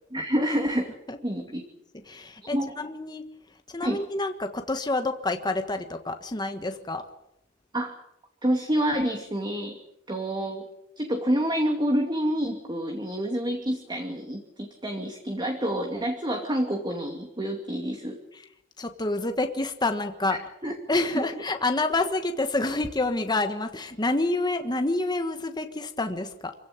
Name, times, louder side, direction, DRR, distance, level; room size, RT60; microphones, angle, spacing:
voice 1, 0.1-0.9 1.2-1.6 2.5-2.7 3.8-4.0 7.7-8.0 8.4-9.8 10.1-10.7 11.0-18.2 20.6-20.7 21.2-21.3, equal, 25° right, 3 dB, 2.5 m, -28 dB
voice 2, 1.9-3.2 3.7-7.0 18.3-18.5 18.8-26.5, left 2 dB, 20° left, 7 dB, 1.4 m, -28 dB
26.0 x 16.5 x 9.1 m, 0.83 s
head